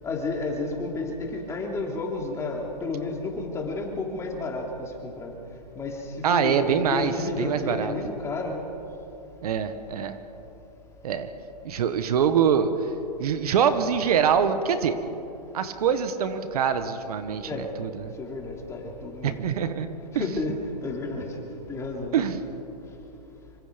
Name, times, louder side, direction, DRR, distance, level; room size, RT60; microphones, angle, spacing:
voice 1, 0.0-5.3 5.8-8.6 17.4-17.7 18.2-19.4 20.1-21.3 21.7-22.2, left 3 dB, 15° left, 1 dB, 3.0 m, -31 dB
voice 2, 6.2-7.9 9.4-10.2 11.0-11.3 11.6-12.7 13.2-15.0 15.5-18.1 19.2-19.9 20.1-20.3 22.1-22.4, right 7 dB, 60° right, 10 dB, 1.6 m, -24 dB
26.5 x 23.5 x 5.3 m, 3.0 s
hypercardioid pair, 150°, 21 cm